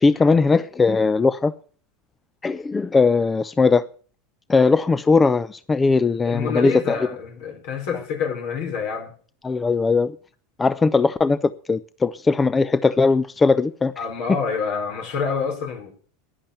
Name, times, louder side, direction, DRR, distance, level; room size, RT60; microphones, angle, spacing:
voice 1, 0.0-1.5 2.4-3.8 4.5-7.0 9.4-10.1 10.6-13.9, left 4 dB, 15° left, 0.5 m, -19 dB
voice 2, 6.2-9.1 14.0-15.9, left 6 dB, 65° left, 5.5 m, -27 dB
11.0 x 10.5 x 6.9 m
supercardioid pair, 110°, 0 cm